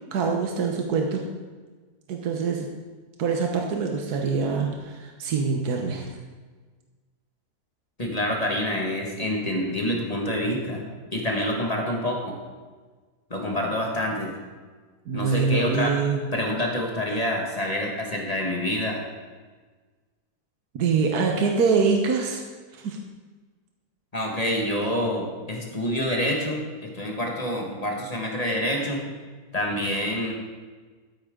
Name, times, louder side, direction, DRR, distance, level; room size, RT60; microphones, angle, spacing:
voice 1, 0.1-1.2 2.1-2.7 3.2-6.1 15.1-16.2 20.7-22.4 22.8-23.0, right 5 dB, 80° right, 2 dB, 1.6 m, -24 dB
voice 2, 8.0-10.8 11.1-12.4 13.3-14.3 15.1-16.0 16.3-19.0 24.1-29.0 29.5-30.3, left 1 dB, 25° left, -1 dB, 1.8 m, -27 dB
13.0 x 9.9 x 3.8 m, 1.4 s
omnidirectional pair, 1.7 m